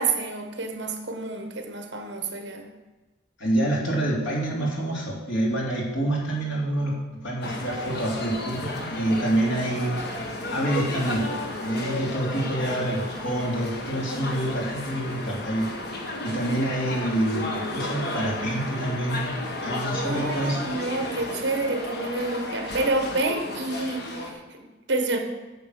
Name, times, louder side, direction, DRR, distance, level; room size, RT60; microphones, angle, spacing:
voice 1, 0.0-2.7 7.7-8.0 20.0-25.2, right 2 dB, 60° right, 5 dB, 1.5 m, -29 dB
voice 2, 3.4-20.6, right 1 dB, 70° left, -4 dB, 3.1 m, -27 dB
sound 1, 7.4-24.3, left 1 dB, 55° left, 1.5 m, -33 dB
9.3 x 7.1 x 6.6 m, 1.2 s
head